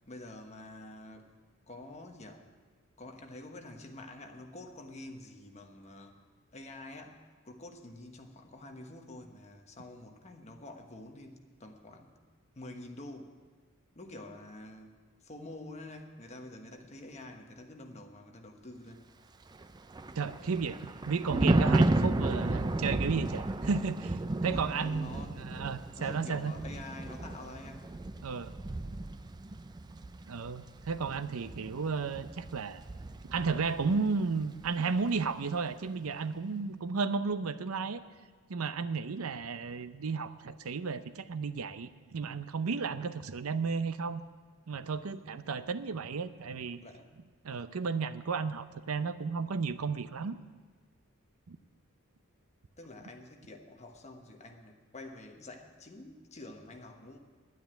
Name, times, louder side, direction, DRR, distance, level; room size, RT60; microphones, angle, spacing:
voice 1, 0.1-1.3 1.7-2.5 3.0-6.2 6.5-12.1 12.5-13.4 13.9-19.1 24.4-25.4 26.0-27.9 46.8-47.1 52.8-57.2, left 2 dB, 30° left, 4 dB, 1.2 m, -47 dB
Thunder, 19.5-34.1 34.4-34.7, right 2 dB, 20° right, 0.4 m, -33 dB
voice 2, 20.1-20.8 21.1-26.6 28.2-28.5 30.3-32.8 33.3-38.0 38.5-44.2 44.7-46.8 47.4-50.4 51.5-51.6, right 5 dB, 85° right, 13 dB, 0.6 m, -33 dB
11.0 x 9.6 x 8.9 m, 1.4 s
head